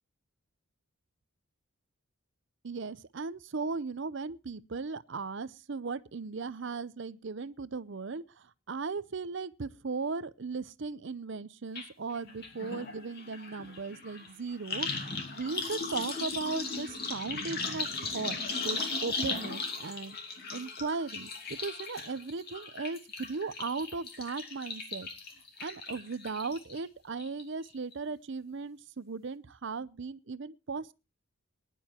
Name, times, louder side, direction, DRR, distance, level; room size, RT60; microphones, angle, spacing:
voice 1, 2.6-14.9 15.3-20.2 20.5-25.1 25.6-30.9, right 4 dB, 55° right, 0.6 m, -37 dB
sound 1, 11.8-11.9 12.2-26.8 27.2-27.7 27.9-28.0, left 4 dB, 45° left, 2.7 m, -37 dB
20.5 x 11.0 x 2.9 m
head